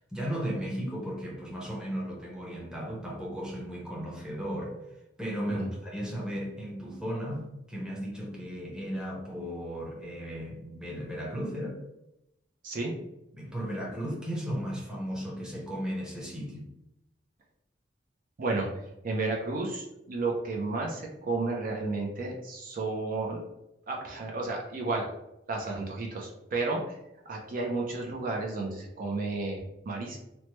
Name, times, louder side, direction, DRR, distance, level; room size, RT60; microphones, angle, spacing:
voice 1, 0.1-4.8 5.2-11.8 13.3-16.7, equal, 5° right, -4 dB, 0.8 m, -35 dB
voice 2, 18.4-23.4 23.9-25.1 25.5-27.0 27.3-30.2, right 3 dB, 50° right, -1 dB, 0.5 m, -32 dB
3.0 x 2.1 x 3.0 m, 0.87 s
head